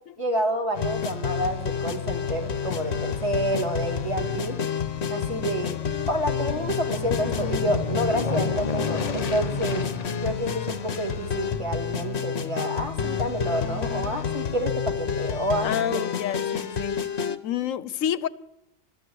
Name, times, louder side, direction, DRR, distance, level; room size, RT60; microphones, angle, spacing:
voice 1, 0.2-4.6 5.1-5.7 6.1-9.9 10.2-16.0, right 1 dB, 25° right, 2.7 m, -29 dB
sound 1, 0.7-17.4, left 7 dB, 55° left, 1.2 m, -29 dB
Aircraft, 1.8-14.0 14.4-14.5, left 4 dB, 35° left, 0.8 m, -35 dB
voice 2, 15.6-18.3, left 10 dB, 85° left, 1.1 m, -29 dB
22.0 x 13.5 x 4.7 m
omnidirectional pair, 1.4 m